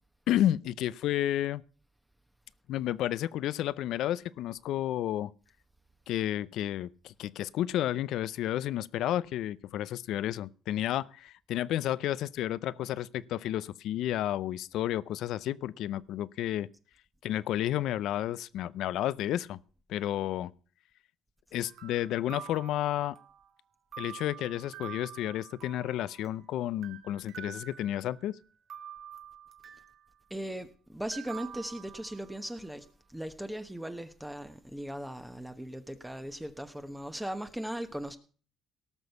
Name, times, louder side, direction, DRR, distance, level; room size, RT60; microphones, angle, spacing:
voice 1, 0.3-1.6 2.7-5.3 6.1-16.7 17.2-19.6 19.9-20.5 21.5-23.2 24.0-28.4, left 12 dB, 75° left, 0.5 m, -31 dB
sound 1, 21.6-23.5 23.9-26.5 26.8-28.3 28.7-30.1 31.1-32.5, right 9 dB, 60° right, 2.1 m, -47 dB
voice 2, 30.3-38.2, right 1 dB, 5° right, 1.1 m, -38 dB
18.0 x 6.2 x 6.9 m
cardioid pair, 100°, 0 cm